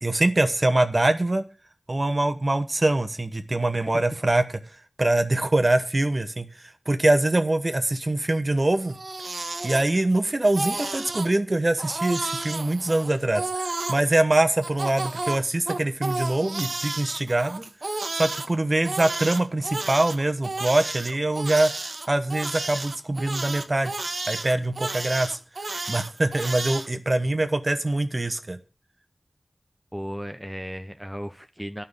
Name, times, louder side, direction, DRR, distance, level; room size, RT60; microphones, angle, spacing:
voice 1, 0.0-1.4 1.9-4.4 5.0-9.0 9.6-17.6 18.1-21.7 22.1-24.0 24.3-25.4 25.9-28.6, right 2 dB, 40° right, 8 dB, 1.1 m, -23 dB
Crying sobbing, 8.7-10.2 10.4-11.3 11.8-14.0 14.6-18.5 18.9-26.9, right 2 dB, 75° right, 1.2 m, -32 dB
voice 2, 29.9-31.8, equal, ahead, 7 dB, 0.8 m, -35 dB
11.0 x 5.7 x 6.7 m, 0.35 s
wide cardioid pair, 50°, 0 cm